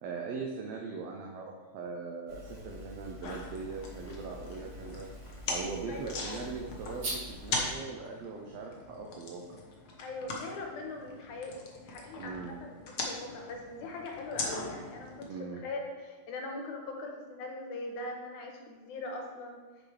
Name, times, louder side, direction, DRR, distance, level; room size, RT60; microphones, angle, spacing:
voice 1, 0.0-5.1 5.5-9.6 12.2-12.6 15.3-15.6, right 4 dB, 70° right, 0 dB, 1.6 m, -40 dB
sound 1, 2.3-7.7, right 1 dB, 45° right, 1.6 m, -44 dB
sound 2, 3.2-15.2, left 3 dB, 70° left, 0.9 m, -41 dB
voice 2, 5.9-6.5 10.0-19.6, left 2 dB, 90° left, 1 dB, 2.6 m, -41 dB
8.6 x 6.3 x 3.3 m, 1.3 s
omnidirectional pair, 3.4 m